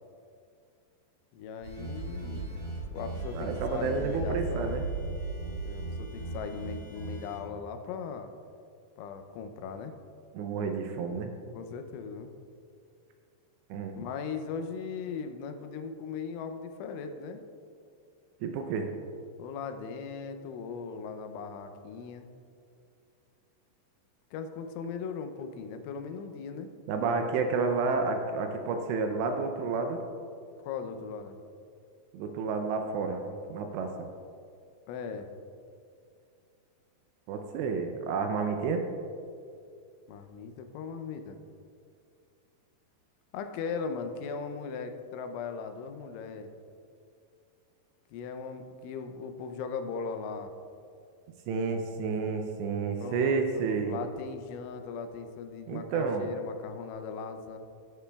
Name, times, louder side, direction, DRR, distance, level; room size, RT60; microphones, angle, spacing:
voice 1, 1.3-2.7 2.9-4.8 5.7-8.3 9.0-9.9 11.5-12.3 14.0-17.4 19.4-22.3 24.3-26.7 30.6-31.4 34.9-35.3 40.1-41.4 43.3-46.5 48.1-50.5 53.0-57.6, left 5 dB, 90° left, 7 dB, 3.1 m, -38 dB
sound 1, 1.6-7.4, right 2 dB, 55° right, 2.2 m, -36 dB
voice 2, 3.3-4.8 10.3-11.3 13.7-14.0 18.4-18.9 26.9-30.0 32.1-33.9 37.3-38.8 51.5-53.9 55.7-56.3, right 4 dB, 80° right, 5 dB, 2.6 m, -30 dB
14.5 x 8.3 x 2.3 m, 2.4 s
omnidirectional pair, 5.3 m